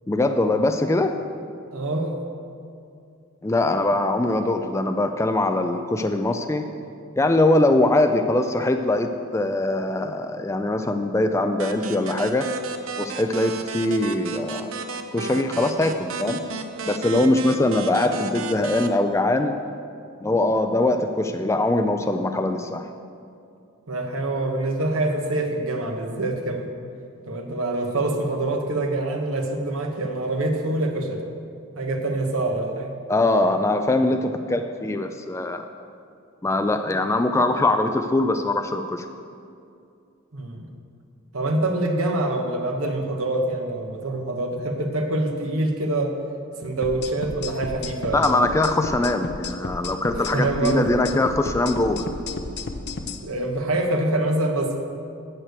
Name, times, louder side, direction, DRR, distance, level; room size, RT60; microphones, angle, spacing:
voice 1, 0.1-1.2 3.4-6.6 7.2-12.5 13.0-14.7 15.1-16.4 16.9-19.6 20.2-22.9 33.1-35.7 36.4-39.1 48.1-52.0, left 2 dB, 15° left, 6 dB, 0.3 m, -22 dB
voice 2, 1.7-2.2 23.9-26.7 27.3-31.2 31.8-32.9 40.3-40.7 41.3-46.1 46.6-48.4 50.3-50.9 53.2-54.8, right 2 dB, 85° right, 3 dB, 1.2 m, -25 dB
sound 1, 11.6-18.9, right 3 dB, 70° right, 0.7 m, -33 dB
sound 2, 46.8-53.2, left 3 dB, 50° left, 0.7 m, -33 dB
8.9 x 6.5 x 8.1 m, 2.5 s
head